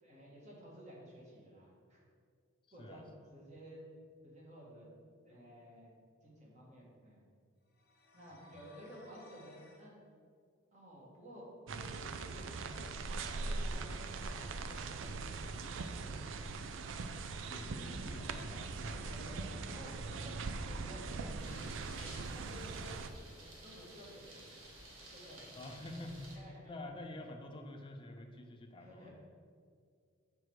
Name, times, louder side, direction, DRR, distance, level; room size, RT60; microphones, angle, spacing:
voice 1, 0.0-2.0 2.7-3.0 3.3-3.8 4.2-4.9 5.2-5.9 6.2-7.2 8.1-9.9 10.7-16.1 17.2-17.4 18.9-21.3 22.0-24.5 25.1-25.5 26.3-26.7 28.8-29.1, equal, 35° right, -4 dB, 1.8 m, -54 dB
sound 1, 7.7-9.9, left 1 dB, 50° left, 1.0 m, -61 dB
sound 2, 11.7-23.1, right 3 dB, 65° right, 0.4 m, -41 dB
voice 2, 17.5-19.8 25.5-29.1, left 1 dB, 25° left, 3 dB, 0.6 m, -48 dB
sound 3, 21.4-26.4, right 1 dB, 90° right, 1.4 m, -54 dB
6.5 x 4.5 x 4.7 m, 2.1 s
head